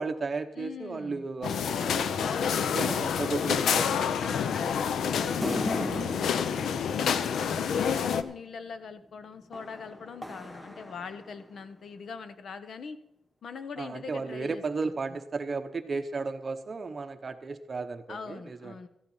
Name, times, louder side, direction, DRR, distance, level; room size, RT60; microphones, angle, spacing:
voice 1, 0.0-2.3 2.6-4.1 13.8-18.7, right 4 dB, 35° right, 9 dB, 0.9 m, -34 dB
voice 2, 0.6-1.3 2.2-3.0 4.2-7.0 7.4-13.0 13.4-15.2 18.1-18.9, left 5 dB, 60° left, 11 dB, 0.9 m, -42 dB
sound 1, 1.4-8.2, left 7 dB, 85° left, 0.6 m, -28 dB
sound 2, 5.4-8.1 9.5-11.6, left 1 dB, 10° left, 1.0 m, -37 dB
13.5 x 10.0 x 5.5 m, 0.82 s
wide cardioid pair, 140°, 0 cm